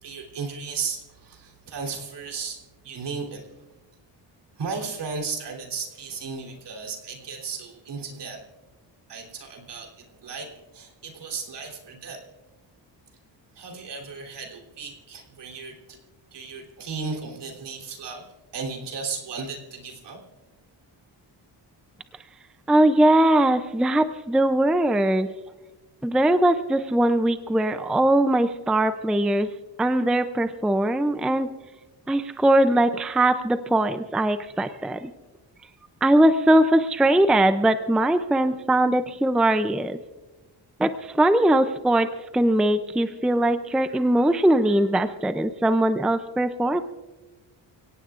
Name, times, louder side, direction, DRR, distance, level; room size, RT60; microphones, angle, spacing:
voice 1, 0.0-2.6 2.8-3.4 4.6-8.4 9.1-10.5 10.7-12.2 13.5-16.0 16.3-18.2 18.5-20.2, right 5 dB, 65° right, 2 dB, 3.5 m, -35 dB
voice 2, 22.7-25.3 26.0-29.5 29.8-31.5 32.1-35.1 36.0-40.0 40.8-42.1 42.3-46.8, right 1 dB, ahead, 9 dB, 0.4 m, -21 dB
29.5 x 17.5 x 2.5 m, 1.2 s
wide cardioid pair, 175°, 44 cm